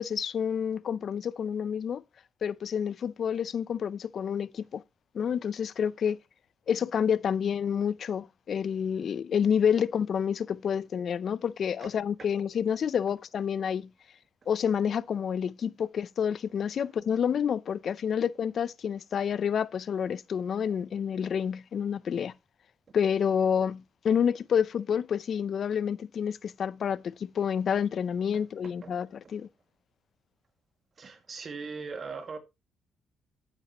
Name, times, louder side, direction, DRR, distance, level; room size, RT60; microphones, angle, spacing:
voice 1, 0.0-2.0 2.4-4.8 5.1-6.2 6.7-13.9 14.5-22.3 22.9-29.5, left 7 dB, 55° left, 0.5 m, -29 dB
voice 2, 28.3-28.9 31.0-32.4, right 4 dB, 45° right, 2.1 m, -40 dB
12.0 x 9.0 x 3.0 m
cardioid pair, 90°, 0 cm